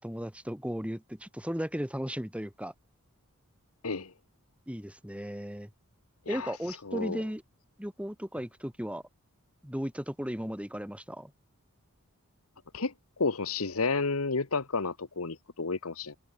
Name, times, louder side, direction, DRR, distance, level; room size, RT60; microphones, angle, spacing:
voice 1, 0.0-2.7 4.7-5.7 6.3-7.4 7.8-9.0 9.6-11.3, equal, 5° right, 3.8 m, -36 dB
voice 2, 6.3-7.2 12.7-16.2, left 4 dB, 75° left, 1.3 m, -32 dB
head